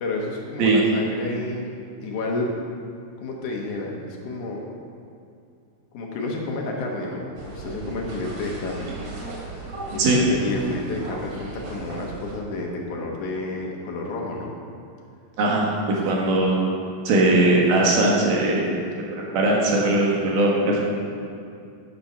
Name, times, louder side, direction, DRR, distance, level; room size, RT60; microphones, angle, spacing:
voice 1, 0.0-1.7 2.0-2.5 3.2-4.7 5.9-8.9 9.9-14.5 16.0-16.1, left 2 dB, 65° left, -1 dB, 2.4 m, -30 dB
sound 1, 7.4-12.4, right 3 dB, 65° right, 3.6 m, -37 dB
voice 2, 15.4-15.7 16.1-16.6 17.1-18.6 19.1-20.8, right 2 dB, 85° right, -3 dB, 3.4 m, -19 dB
9.9 x 9.3 x 5.7 m, 2.5 s
omnidirectional pair, 4.1 m